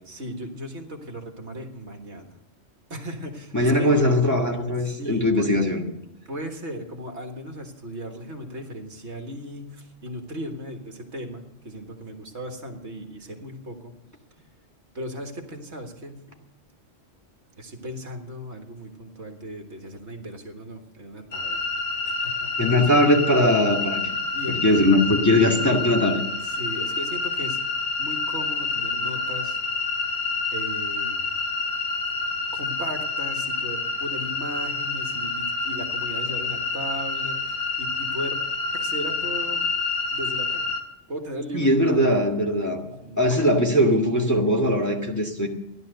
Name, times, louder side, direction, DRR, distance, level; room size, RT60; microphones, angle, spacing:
voice 1, 0.1-2.4 2.9-3.9 4.8-5.6 6.3-13.9 14.9-16.2 17.6-21.7 22.0-22.6 24.3-24.8 26.4-27.6 28.0-29.6 30.5-31.2 32.5-38.4 38.7-39.7 40.1-40.6 41.1-42.0 42.8-43.3, equal, 60° right, 4 dB, 1.9 m, -36 dB
voice 2, 3.5-5.8 22.6-24.2 24.6-26.2 41.5-42.8 43.2-45.5, left 1 dB, 15° left, -1 dB, 1.8 m, -20 dB
sound 1, 21.3-40.8, left 4 dB, 85° left, 2.3 m, -28 dB
15.0 x 11.0 x 6.7 m, 0.87 s
omnidirectional pair, 1.3 m